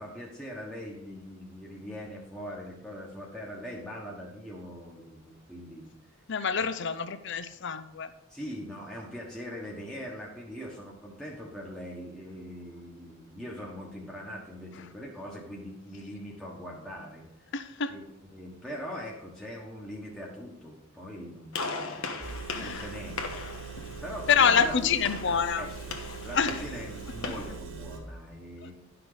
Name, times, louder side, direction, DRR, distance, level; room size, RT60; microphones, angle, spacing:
voice 1, 0.0-5.9 6.6-6.7 8.3-17.5 17.9-22.3 22.5-23.2 24.0-24.7 25.2-25.8 26.2-28.7, equal, 5° left, -4 dB, 1.2 m, -41 dB
voice 2, 6.3-8.1 17.5-18.0 22.6-22.9 24.3-25.7 26.3-26.6 28.6-28.7, left 6 dB, 60° left, 12 dB, 0.6 m, -26 dB
Gunshot gunfire, 21.5-27.6, left 3 dB, 90° left, 1.3 m, -39 dB
Engine, 22.2-28.0, right 5 dB, 70° right, 2.1 m, -42 dB
11.5 x 5.9 x 5.0 m, 0.89 s
head